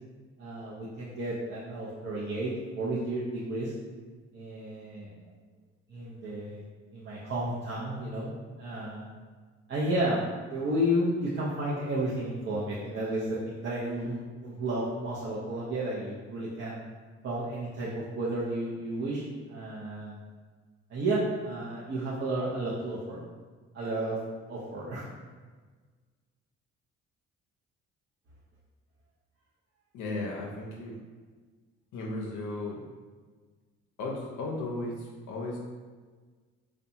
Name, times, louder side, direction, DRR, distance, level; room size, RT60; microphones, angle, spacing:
voice 1, 0.4-3.7 4.3-5.3 5.9-6.6 6.9-9.1 9.7-16.8 17.2-20.2 20.9-23.2 23.7-24.2 24.5-25.0, right 1 dB, 40° right, -7 dB, 0.5 m, -32 dB
voice 2, 29.9-31.0 31.9-32.9 34.0-35.6, left 2 dB, 80° left, -2 dB, 0.5 m, -35 dB
2.5 x 2.1 x 2.8 m, 1.5 s
cardioid pair, 90°, 30 cm